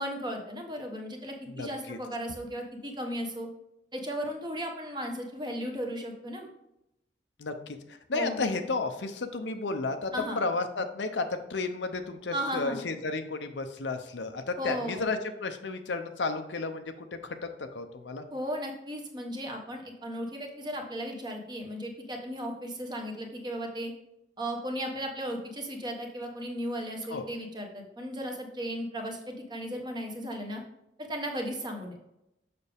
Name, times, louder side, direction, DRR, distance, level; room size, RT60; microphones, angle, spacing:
voice 1, 0.0-3.5 3.9-6.5 8.1-8.4 10.1-10.4 12.3-12.8 14.6-15.1 18.3-23.9 24.4-30.6 31.0-32.0, equal, 25° right, 2 dB, 1.1 m, -35 dB
voice 2, 1.5-2.0 7.4-7.8 8.1-17.1 17.7-18.2 27.1-27.2, left 3 dB, 85° left, 7 dB, 0.7 m, -32 dB
6.8 x 5.9 x 3.5 m, 0.85 s
head